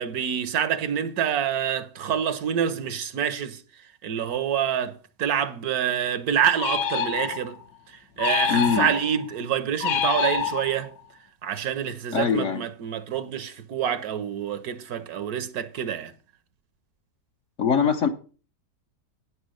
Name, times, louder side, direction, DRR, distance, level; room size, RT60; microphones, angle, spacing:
voice 1, 0.0-3.6 4.0-7.6 8.2-10.9 11.4-16.1, right 9 dB, 65° right, 1.2 m, -27 dB
sound 1, 6.6-7.6 8.2-9.2 9.8-11.0, left 7 dB, 85° left, 1.6 m, -26 dB
voice 2, 8.5-8.9 12.1-12.6 17.6-18.1, left 6 dB, 55° left, 1.0 m, -22 dB
9.5 x 6.2 x 6.2 m
omnidirectional pair, 1.8 m